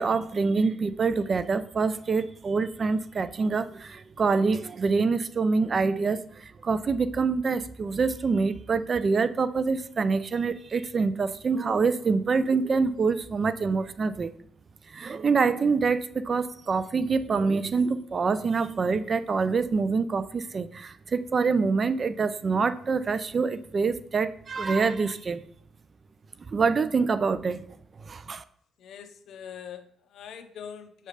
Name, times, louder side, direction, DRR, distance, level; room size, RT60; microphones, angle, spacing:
voice 1, 0.0-14.3 14.9-25.4 26.5-27.7 28.0-28.4, right 4 dB, 40° right, 13 dB, 0.4 m, -26 dB
voice 2, 28.8-31.1, left 8 dB, 70° left, 8 dB, 0.6 m, -43 dB
6.5 x 3.2 x 4.9 m, 0.67 s
cardioid pair, 90°, 0 cm